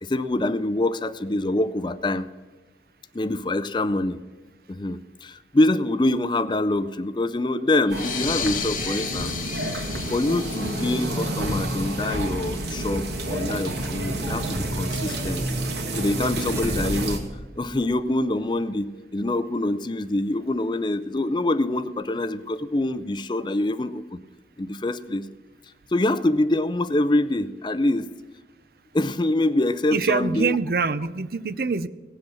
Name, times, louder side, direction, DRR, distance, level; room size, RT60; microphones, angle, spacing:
voice 1, 0.0-2.3 3.1-4.2 4.7-9.4 9.7-15.5 16.0-17.3 17.6-24.2 24.6-25.3 25.9-28.1 28.9-30.6, left 1 dB, 25° left, 14 dB, 0.5 m, -25 dB
sound 1, 7.8-13.0, left 8 dB, 50° left, 1.1 m, -34 dB
sound 2, 7.9-17.2, right 1 dB, 75° right, 2.2 m, -29 dB
sound 3, 16.4-18.4, equal, 15° right, 1.5 m, -36 dB
voice 2, 29.9-31.9, right 4 dB, 55° right, 15 dB, 0.6 m, -24 dB
17.5 x 7.9 x 7.0 m, 1.3 s
head